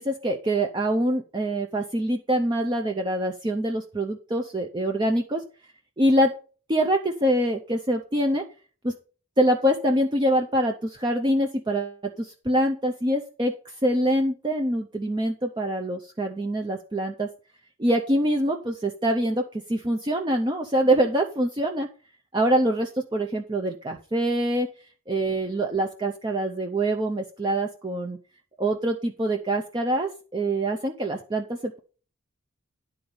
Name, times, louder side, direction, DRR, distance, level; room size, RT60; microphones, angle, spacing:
voice 1, 0.0-5.4 6.0-6.3 6.7-8.4 8.8-8.9 9.4-17.3 17.8-21.9 22.3-24.7 25.1-28.2 28.6-31.8, right 1 dB, 20° right, 3 dB, 0.6 m, -25 dB
10.5 x 4.0 x 7.0 m, 0.38 s
head